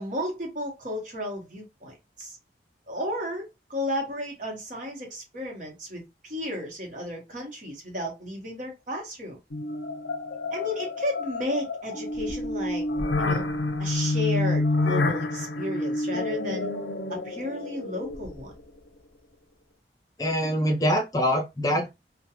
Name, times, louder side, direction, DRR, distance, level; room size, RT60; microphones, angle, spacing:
voice 1, 0.0-2.4 2.9-9.4 10.5-12.8 13.2-13.5 13.8-16.7 17.1-18.5, left 1 dB, 45° right, 0.9 m, -33 dB
sound 1, 9.5-18.6, left 2 dB, 85° left, 0.5 m, -28 dB
voice 2, 20.2-21.9, equal, 20° left, 0.4 m, -24 dB
2.4 x 2.1 x 2.8 m
head